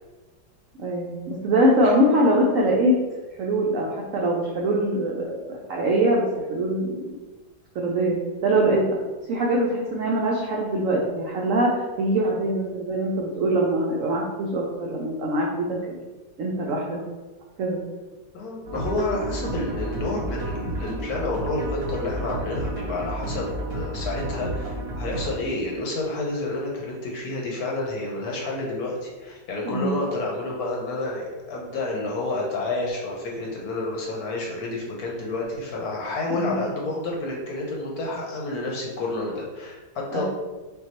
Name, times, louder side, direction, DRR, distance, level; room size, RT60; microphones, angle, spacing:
voice 1, 0.8-3.0 3.4-7.1 7.7-8.2 8.4-8.9 9.3-16.0 16.4-17.0 17.6-17.8 29.7-30.0 36.3-36.6 40.1-40.2, right 1 dB, 85° right, -2 dB, 0.7 m, -23 dB
voice 2, 18.3-40.2, left 2 dB, 65° left, -2 dB, 1.1 m, -29 dB
sound 1, 18.7-25.3, right 1 dB, 60° right, 1.0 m, -31 dB
5.7 x 2.3 x 2.9 m, 1.2 s
omnidirectional pair, 2.0 m